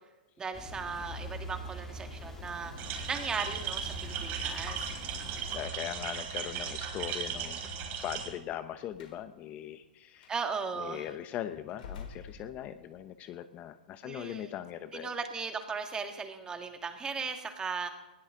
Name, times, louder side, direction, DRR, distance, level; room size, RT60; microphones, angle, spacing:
voice 1, 0.4-4.9 10.3-11.0 14.0-14.5 14.9-17.9, right 5 dB, 15° right, 6 dB, 1.9 m, -37 dB
sound 1, 0.5-5.6, equal, 10° left, 3.0 m, -44 dB
sound 2, 2.8-8.3, right 7 dB, 35° right, 3.8 m, -37 dB
voice 2, 5.1-7.6 8.0-10.3 10.8-15.1, left 11 dB, 30° left, 11 dB, 0.8 m, -40 dB
Slam, 8.9-9.2 10.2-10.4 11.7-13.0, left 6 dB, 65° left, 4.5 m, -46 dB
20.5 x 16.5 x 3.9 m, 1.0 s
hypercardioid pair, 130°, 5 cm